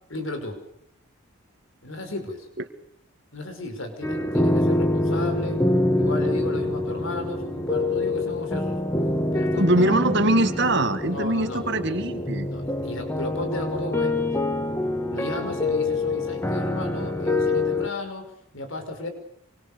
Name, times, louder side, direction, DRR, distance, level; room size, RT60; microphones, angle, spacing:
voice 1, 0.1-0.6 1.8-2.5 3.3-5.6 6.0-8.8 9.3-9.9 11.1-11.6 12.5-14.3 15.1-19.1, left 2 dB, 65° left, 7 dB, 5.5 m, -34 dB
sound 1, 4.0-17.9, left 2 dB, 10° left, 1.6 m, -25 dB
voice 2, 9.6-12.5, right 2 dB, 55° right, 9 dB, 2.2 m, -22 dB
27.0 x 25.0 x 7.0 m, 0.70 s
head